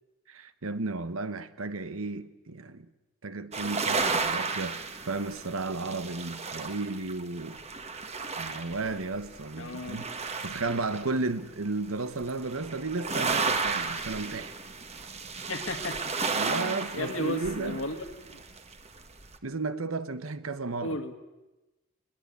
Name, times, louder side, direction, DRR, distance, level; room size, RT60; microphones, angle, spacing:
voice 1, 0.3-2.9 3.2-7.6 8.4-10.1 10.4-14.5 16.3-17.8 19.4-21.2, right 3 dB, 90° right, 1.2 m, -34 dB
sound 1, 3.5-11.4 11.9-19.4, right 4 dB, 30° right, 1.4 m, -33 dB
voice 2, 9.6-10.1 15.5-16.1 16.5-18.4 20.8-21.2, left 2 dB, 75° left, 2.2 m, -35 dB
21.5 x 21.0 x 8.4 m
head